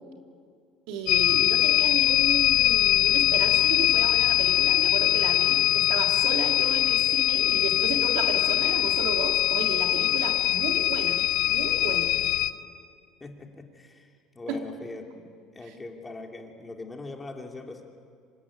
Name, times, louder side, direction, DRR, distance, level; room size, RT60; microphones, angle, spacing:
voice 1, 0.9-12.1 14.5-14.6 15.7-15.8, right 4 dB, 80° right, 2 dB, 3.4 m, -33 dB
sound 1, 1.1-12.5, left 14 dB, 75° left, 1.0 m, -22 dB
voice 2, 13.2-14.1 14.3-15.2 15.5-17.8, left 3 dB, 20° left, 2 dB, 3.0 m, -41 dB
26.0 x 14.0 x 9.9 m, 2.1 s
cardioid pair, 115°, 0 cm